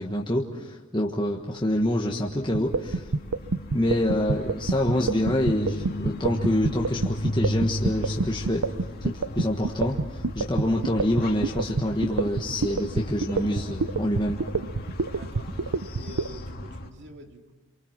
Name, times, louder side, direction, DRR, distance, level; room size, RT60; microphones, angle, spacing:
voice 1, 0.0-3.1 3.7-8.7 9.0-14.4, left 1 dB, 20° left, -1 dB, 1.4 m, -26 dB
sound 1, 1.4-16.9, left 1 dB, 45° left, 1.8 m, -36 dB
sound 2, 2.5-16.3, right 3 dB, 85° right, 0.7 m, -26 dB
voice 2, 15.1-17.5, equal, 50° right, 3 dB, 2.6 m, -47 dB
28.5 x 24.0 x 6.0 m, 1.2 s
head